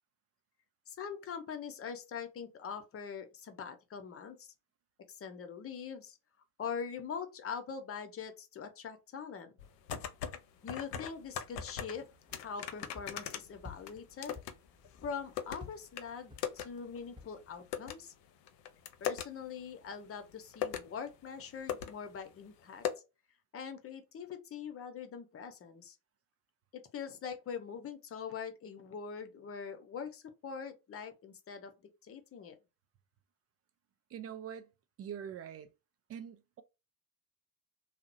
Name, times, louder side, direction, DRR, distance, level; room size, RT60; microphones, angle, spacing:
voice 1, 0.9-4.5 5.1-6.2 6.6-9.5 10.6-12.0 12.3-14.4 15.0-18.1 19.0-22.8 23.5-26.0 26.7-31.7 32.0-32.6, left 6 dB, 30° left, 0.7 m, -43 dB
sound 1, 9.6-10.4 10.7-12.0 12.3-14.5 14.8-15.6 16.0-16.1 16.4-16.7 17.0-17.1 17.7-17.9 18.5-19.3 20.1-20.2 20.5-20.9 21.4-21.5 21.7-21.9 22.2-22.3 22.8-22.9, left 9 dB, 80° left, 0.5 m, -38 dB
sound 2, 11.1-17.8, left 3 dB, 10° right, 0.9 m, -55 dB
voice 2, 34.1-34.7 35.0-35.7 36.1-36.6, right 8 dB, 30° right, 0.5 m, -44 dB
2.7 x 2.0 x 2.5 m
figure-of-eight pair, 50°, 48 cm